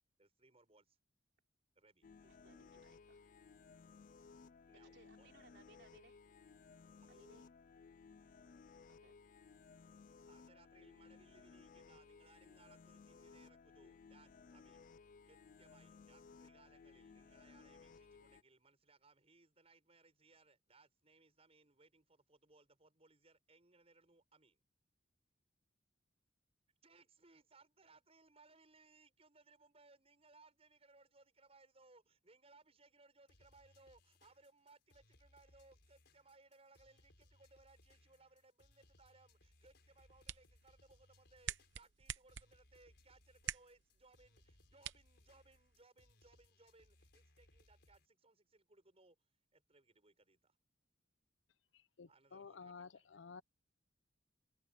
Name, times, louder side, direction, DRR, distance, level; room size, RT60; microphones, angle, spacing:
voice 1, 0.2-1.0 1.7-2.1 2.4-2.6 4.7-5.5 7.0-7.2 10.3-14.9 15.2-24.6 26.8-49.2 49.5-50.6 52.1-53.1, right 3 dB, 35° right, 6.4 m, -67 dB
sound 1, 2.0-18.4, left 5 dB, 45° left, 0.4 m, -60 dB
voice 2, 2.2-3.4 4.9-6.2 7.1-7.5 8.9-9.1, right 3 dB, 65° right, 3.9 m, -66 dB
sound 2, 33.3-48.1, left 1 dB, 65° left, 5.8 m, -70 dB
sound 3, 39.8-45.9, right 9 dB, 80° right, 0.8 m, -50 dB
voice 3, 51.7-53.4, left 5 dB, 85° left, 0.6 m, -53 dB
open air
head